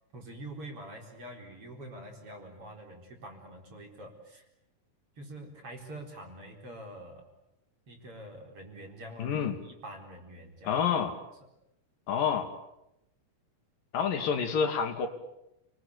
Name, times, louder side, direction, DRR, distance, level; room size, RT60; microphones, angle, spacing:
voice 1, 0.1-4.4 5.2-7.3 7.9-9.4 9.6-10.8, right 1 dB, 40° right, 2 dB, 5.0 m, -45 dB
voice 2, 9.2-9.6 10.6-11.1 12.1-12.5 13.9-15.1, left 7 dB, 80° left, 6 dB, 4.0 m, -28 dB
29.0 x 21.0 x 8.6 m, 0.87 s
omnidirectional pair, 3.9 m